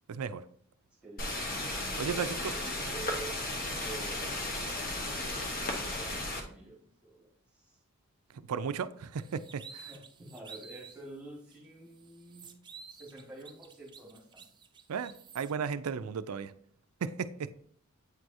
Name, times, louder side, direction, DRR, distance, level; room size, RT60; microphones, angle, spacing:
voice 1, 0.1-0.4 2.0-2.3 8.5-9.9 14.9-16.5 17.0-17.6, right 6 dB, 90° right, 0.4 m, -35 dB
sound 1, 1.2-6.4, left 1 dB, 45° left, 1.1 m, -35 dB
voice 2, 2.0-3.4 3.8-7.3 7.5-7.8 9.9-14.4, right 2 dB, 5° right, 1.6 m, -48 dB
sound 2, 9.2-11.0 11.5-11.6 11.9-15.5, right 6 dB, 20° right, 0.5 m, -51 dB
8.3 x 4.7 x 2.6 m
head